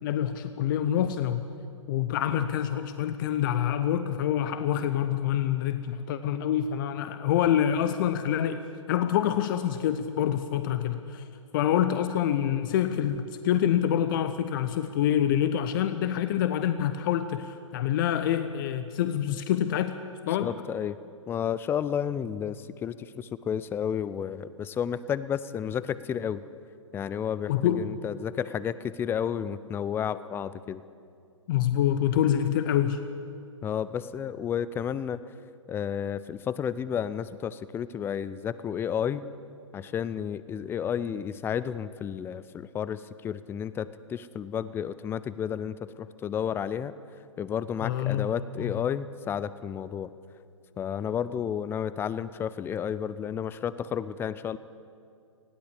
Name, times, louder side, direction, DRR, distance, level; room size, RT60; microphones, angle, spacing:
voice 1, 0.0-1.4 1.9-11.2 11.5-20.0 20.3-20.5 27.5-27.9 31.5-33.0 47.8-48.3 48.6-48.7, left 10 dB, 40° left, 10 dB, 0.9 m, -26 dB
voice 2, 20.4-21.0 21.3-26.4 26.9-30.8 33.6-35.2 35.7-39.2 39.7-46.9 47.4-50.1 50.8-54.6, left 8 dB, 15° left, 16 dB, 0.5 m, -31 dB
19.5 x 16.0 x 8.4 m, 2.4 s
figure-of-eight pair, 115°, 16 cm